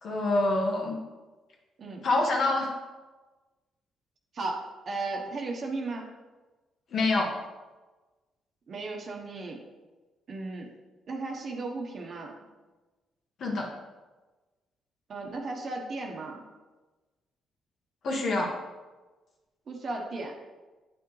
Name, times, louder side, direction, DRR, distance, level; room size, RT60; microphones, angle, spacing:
voice 1, 0.0-1.0 2.0-2.7 6.9-7.3 13.4-13.7 18.0-18.5, left 2 dB, 60° left, -1 dB, 1.5 m, -26 dB
voice 2, 4.3-6.1 8.7-9.6 10.3-10.7 11.1-12.3 15.1-16.4 19.7-20.4, right 3 dB, 50° right, 0 dB, 1.2 m, -35 dB
8.4 x 6.1 x 3.3 m, 1.2 s
cardioid pair, 90°, 0 cm